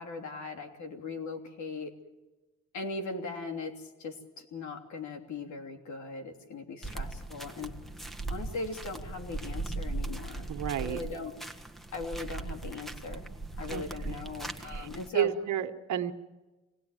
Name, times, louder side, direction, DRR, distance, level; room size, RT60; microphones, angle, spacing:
voice 1, 0.0-1.9 2.7-7.7 8.3-10.5 10.8-11.3 11.9-13.2 13.6-15.3, left 3 dB, 70° left, 5 dB, 3.3 m, -39 dB
sound 1, 6.8-15.1, right 2 dB, ahead, 1.5 m, -39 dB
voice 2, 10.5-11.0 13.7-14.2 14.6-14.9 15.1-16.1, right 10 dB, 70° right, 8 dB, 1.4 m, -32 dB
26.5 x 19.0 x 9.2 m, 1.2 s
cardioid pair, 90°, 30 cm